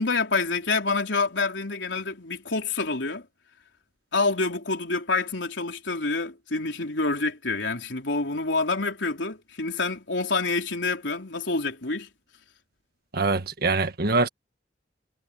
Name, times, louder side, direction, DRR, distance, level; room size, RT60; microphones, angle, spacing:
voice 1, 0.0-3.3 4.1-12.1, left 3 dB, 80° left, 4.0 m, -27 dB
voice 2, 13.1-14.3, right 3 dB, 55° right, 1.7 m, -24 dB
head